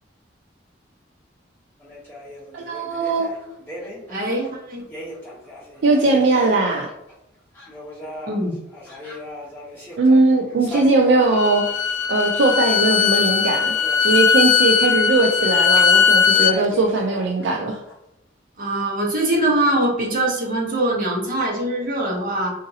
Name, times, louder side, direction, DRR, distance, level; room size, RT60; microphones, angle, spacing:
sound 1, 1.8-7.1 7.5-15.8 16.2-17.9, left 1 dB, 10° left, 1.1 m, -38 dB
voice 1, 2.5-3.3 5.8-6.9 10.0-11.7 12.1-13.8 14.0-17.8, right 2 dB, 70° right, 2 dB, 0.3 m, -19 dB
voice 2, 4.1-4.8 8.3-8.6 18.6-22.5, right 1 dB, 45° right, -2 dB, 0.9 m, -22 dB
Bowed string instrument, 11.2-16.6, left 6 dB, 80° left, 0.4 m, -18 dB
3.9 x 2.5 x 2.7 m, 0.86 s
head